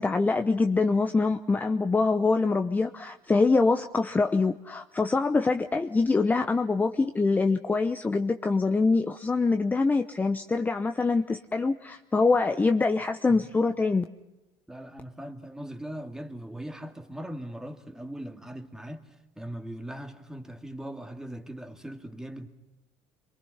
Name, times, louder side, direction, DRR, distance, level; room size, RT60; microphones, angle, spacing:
voice 1, 0.0-14.0, left 3 dB, 15° left, 0.9 m, -24 dB
voice 2, 14.7-22.5, right 1 dB, 5° right, 2.3 m, -40 dB
28.5 x 23.5 x 5.7 m
supercardioid pair, 100°, 10 cm